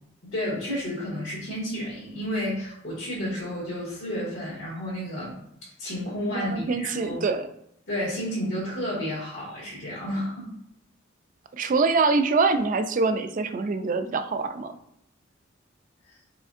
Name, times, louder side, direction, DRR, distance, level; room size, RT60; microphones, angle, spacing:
voice 1, 0.3-7.2 7.9-10.5 16.1-16.2, equal, 75° left, -9 dB, 1.6 m, -31 dB
voice 2, 6.3-7.5 11.5-14.8, right 4 dB, 40° right, 9 dB, 0.3 m, -24 dB
4.9 x 3.5 x 2.5 m, 0.75 s
head